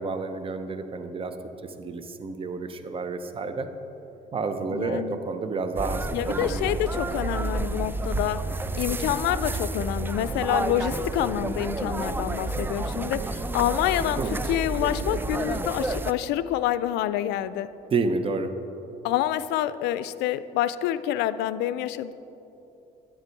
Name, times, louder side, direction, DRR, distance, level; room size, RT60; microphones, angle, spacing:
voice 1, 0.0-1.3 1.6-3.7 4.3-6.6 14.2-14.4 17.9-18.5, right 4 dB, 30° right, 8 dB, 0.8 m, -30 dB
voice 2, 4.7-5.2 6.1-8.5 8.8-17.7 19.0-22.1, left 12 dB, 85° left, 15 dB, 0.4 m, -27 dB
sound 1, 5.8-16.1, right 2 dB, 10° right, 0.3 m, -30 dB
10.0 x 9.7 x 4.6 m, 2.9 s
cardioid pair, 110°, 17 cm